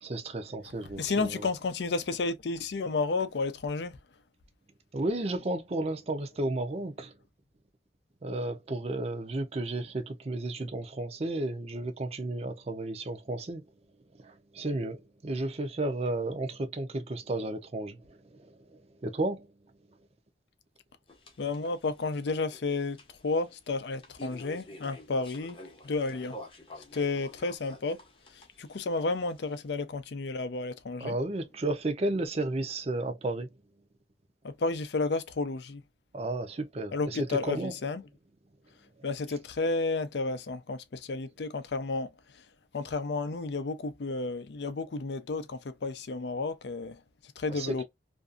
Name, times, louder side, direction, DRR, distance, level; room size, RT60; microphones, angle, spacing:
voice 1, 0.0-1.5 4.9-7.1 8.2-13.6 14.2-19.5 31.0-33.5 36.1-37.7 47.5-47.8, right 2 dB, 35° right, 0.5 m, -33 dB
voice 2, 1.0-4.0 21.4-23.0 23.2-25.6 25.8-26.4 26.9-28.0 28.6-31.2 34.4-35.8 36.9-38.0 39.0-42.1 42.7-47.0 47.4-47.8, left 3 dB, 70° left, 0.5 m, -32 dB
sound 1, 21.1-29.7, left 1 dB, 30° left, 0.8 m, -49 dB
2.6 x 2.4 x 2.4 m
head